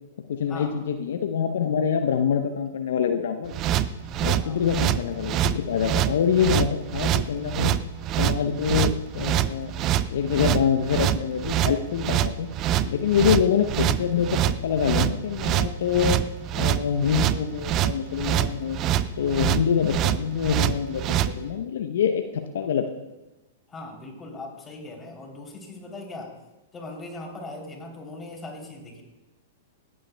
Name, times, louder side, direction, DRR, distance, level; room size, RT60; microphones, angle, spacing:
voice 1, 0.3-3.6 4.2-7.8 8.2-9.7 10.1-12.5 12.8-16.2 16.6-18.8 19.2-22.8, left 7 dB, 65° left, 6 dB, 0.6 m, -25 dB
sound 1, 3.5-21.3, right 11 dB, 35° right, 0.5 m, -25 dB
voice 2, 23.7-26.3 26.7-29.0, left 2 dB, 15° left, -1 dB, 3.0 m, -39 dB
18.5 x 8.7 x 2.2 m, 1.0 s
hypercardioid pair, 105°, 0 cm